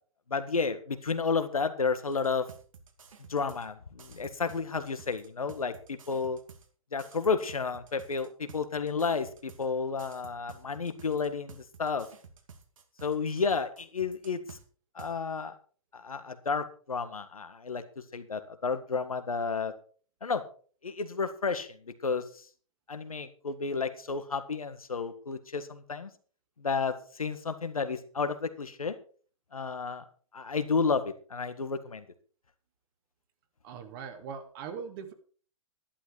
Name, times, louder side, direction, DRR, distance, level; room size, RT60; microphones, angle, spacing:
voice 1, 0.3-2.5 3.3-6.4 6.9-12.1 13.0-14.6 14.9-15.5 15.9-17.8 18.1-19.7 20.2-20.4 20.8-22.4 22.9-26.1 26.6-28.9 29.5-30.0 30.3-32.0, left 5 dB, 85° left, 10 dB, 1.7 m, -31 dB
sound 1, 2.1-3.7 4.0-6.7 7.0-9.7 10.0-14.6 15.0-15.1, right 5 dB, 70° right, 2.4 m, -52 dB
voice 2, 33.6-35.1, right 6 dB, 40° right, 6 dB, 2.2 m, -40 dB
12.0 x 11.0 x 4.6 m, 0.42 s
hypercardioid pair, 120°, 18 cm